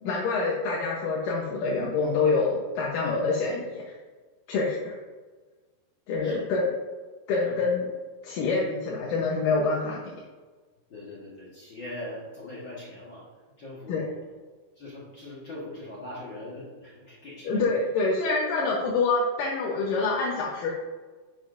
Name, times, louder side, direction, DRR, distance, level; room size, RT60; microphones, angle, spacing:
voice 1, 0.0-4.0 4.5-4.9 6.1-6.7 7.3-7.9 8.2-10.0 13.9-14.0 17.4-20.7, left 3 dB, 70° left, -2 dB, 2.3 m, -26 dB
voice 2, 10.9-13.3 13.6-14.2 14.7-17.6, left 1 dB, 55° left, -6 dB, 1.3 m, -41 dB
10.5 x 7.2 x 2.5 m, 1.4 s
omnidirectional pair, 4.5 m